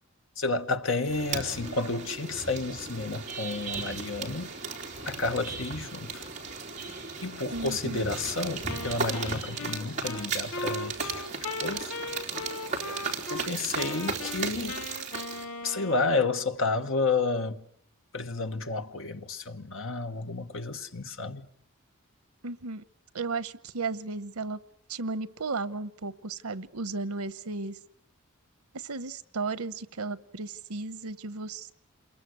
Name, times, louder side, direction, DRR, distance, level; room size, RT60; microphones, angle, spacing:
voice 1, 0.4-4.5 5.0-6.2 7.2-11.2 11.6-11.9 13.3-14.8 15.6-17.6 18.1-21.5, left 3 dB, 65° left, 1.3 m, -31 dB
sound 1, 1.0-15.4, right 4 dB, 35° right, 3.8 m, -36 dB
voice 2, 7.5-8.0 22.4-22.8 23.1-24.6 24.9-27.8 28.7-31.7, right 3 dB, 90° right, 1.0 m, -34 dB
Wind instrument woodwind instrument, 8.7-13.5 13.8-16.4, left 2 dB, 85° left, 1.4 m, -38 dB
27.5 x 22.5 x 8.1 m
head